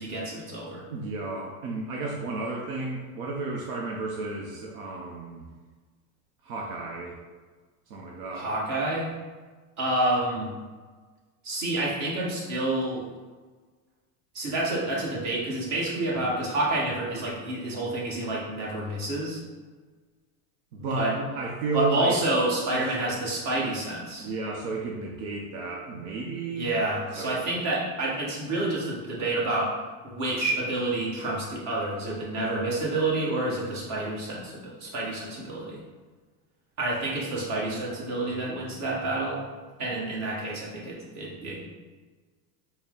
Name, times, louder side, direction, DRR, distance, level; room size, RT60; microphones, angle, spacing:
voice 1, 0.0-0.8 8.3-9.1 9.8-10.5 11.4-13.1 14.3-19.4 20.9-21.1 21.7-24.3 26.5-29.7 30.0-35.8 36.8-39.4 39.8-41.7, right 2 dB, 40° right, -5 dB, 1.3 m, -28 dB
voice 2, 0.9-5.5 6.4-7.1 7.9-8.5 20.7-22.2 22.7-22.8 24.2-26.7 27.2-27.5, right 3 dB, 75° right, -1 dB, 0.7 m, -32 dB
4.2 x 2.1 x 3.6 m, 1.4 s
supercardioid pair, 135°, 44 cm